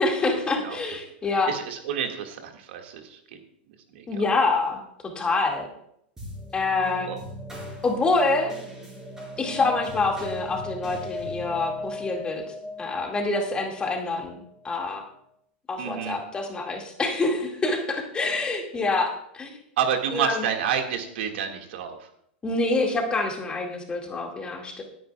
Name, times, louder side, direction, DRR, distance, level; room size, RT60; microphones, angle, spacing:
voice 1, 0.0-1.5 4.1-5.7 6.5-7.1 7.8-8.6 9.4-14.4 14.6-15.0 15.7-19.6 20.1-20.5 22.4-24.8, left 3 dB, 15° left, 1 dB, 2.0 m, -26 dB
voice 2, 0.6-1.0 1.5-3.4 3.9-4.2 7.1-7.2 9.5-9.7 15.8-16.2 19.8-22.1, right 8 dB, 65° right, 4 dB, 1.9 m, -29 dB
sound 1, 6.2-14.9, left 1 dB, 10° right, 4.5 m, -38 dB
19.5 x 9.4 x 2.3 m, 0.72 s
supercardioid pair, 140°, 6 cm